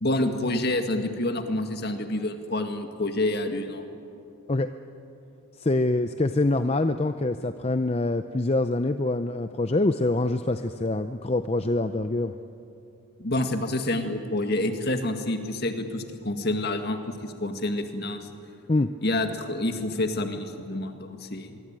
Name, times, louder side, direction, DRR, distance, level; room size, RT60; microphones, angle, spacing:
voice 1, 0.0-3.8 13.2-18.3 19.0-21.6, left 1 dB, 45° left, 6 dB, 2.0 m, -28 dB
voice 2, 5.6-12.3 18.7-18.9, left 2 dB, 25° left, 9 dB, 0.6 m, -25 dB
24.5 x 23.5 x 9.0 m, 2.7 s
head